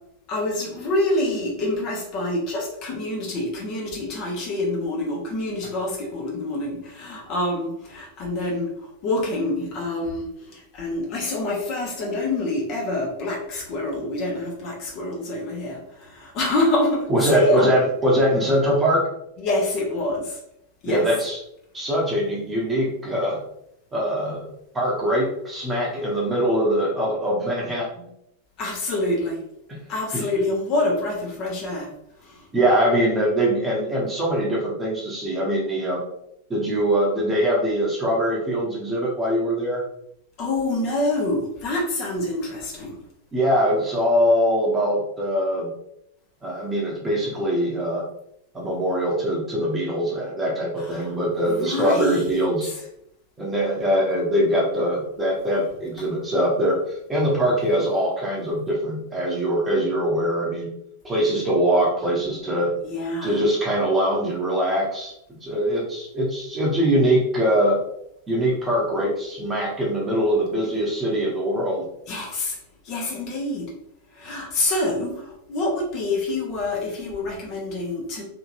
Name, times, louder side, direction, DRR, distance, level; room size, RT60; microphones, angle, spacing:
voice 1, 0.3-8.7 9.0-17.7 19.4-20.4 20.8-21.0 28.6-29.4 29.9-31.9 32.2-32.3 40.4-43.0 50.9-51.0 51.5-52.3 62.8-63.4 72.1-72.6 72.8-73.7 74.2-78.2, left 2 dB, 40° left, -2 dB, 0.9 m, -26 dB
voice 2, 17.1-19.1 20.9-21.4 21.7-23.4 23.9-24.5 24.7-28.1 29.7-29.8 30.1-30.2 32.5-36.0 36.5-39.8 43.3-45.7 46.4-48.0 48.5-52.7 53.4-56.8 57.1-60.7 61.0-62.7 63.2-65.1 65.4-67.8 68.3-71.8, equal, 15° right, -3 dB, 0.9 m, -22 dB
2.9 x 2.7 x 2.6 m, 0.78 s
figure-of-eight pair, 90°, 0 cm